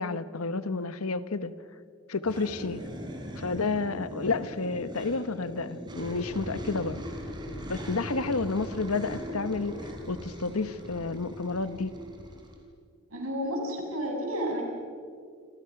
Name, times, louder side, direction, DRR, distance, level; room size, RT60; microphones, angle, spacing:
voice 1, 0.0-1.5 2.1-2.8 3.4-7.0 7.7-9.8 10.1-12.0, left 3 dB, 90° left, 13 dB, 1.2 m, -30 dB
sound 1, 2.2-12.6, equal, 20° right, 3.7 m, -40 dB
voice 2, 13.1-14.6, equal, 85° right, 0 dB, 7.2 m, -31 dB
29.5 x 25.5 x 6.0 m, 2.2 s
head